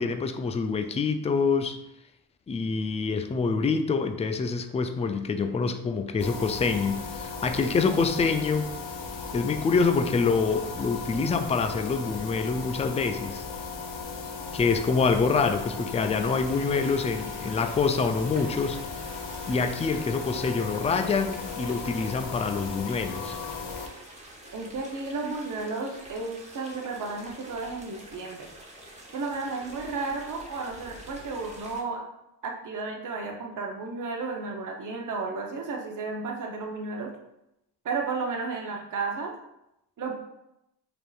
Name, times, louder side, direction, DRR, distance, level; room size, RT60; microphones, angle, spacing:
voice 1, 0.0-1.8 2.5-8.7 9.3-13.4 14.5-18.8 19.5-23.4, left 4 dB, 15° left, 8 dB, 0.3 m, -26 dB
sound 1, 6.2-23.9, left 4 dB, 80° left, 0.7 m, -37 dB
sound 2, 16.1-31.8, right 1 dB, 15° right, 1.0 m, -47 dB
voice 2, 24.5-28.5 29.1-32.0 32.4-37.1 37.8-39.3 40.0-40.1, right 4 dB, 45° right, 1 dB, 0.8 m, -33 dB
5.0 x 2.9 x 2.4 m, 0.85 s
cardioid pair, 60°, 43 cm